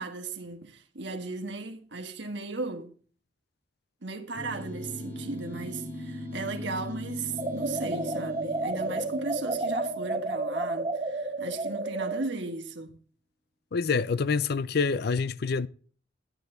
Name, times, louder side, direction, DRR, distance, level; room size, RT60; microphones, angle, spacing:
voice 1, 0.0-3.0 4.0-13.0, right 3 dB, 65° right, 1.6 m, -36 dB
sound 1, 4.3-11.0, left 1 dB, 40° left, 7.1 m, -40 dB
sound 2, 7.4-12.3, right 2 dB, 25° right, 1.5 m, -31 dB
voice 2, 13.7-15.7, left 5 dB, 55° left, 0.5 m, -26 dB
12.0 x 10.5 x 3.9 m
head